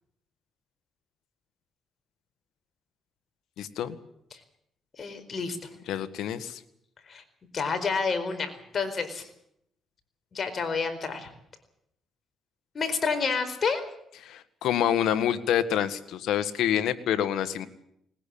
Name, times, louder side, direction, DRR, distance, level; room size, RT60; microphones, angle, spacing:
voice 1, 3.6-4.0 5.9-6.6 14.2-17.7, left 10 dB, 80° left, 11 dB, 1.7 m, -27 dB
voice 2, 5.0-5.7 7.1-7.2 7.5-9.3 10.3-11.3 12.7-13.8, left 5 dB, 45° left, 8 dB, 4.6 m, -29 dB
20.5 x 20.0 x 8.7 m, 0.73 s
cardioid pair, 90°, 0 cm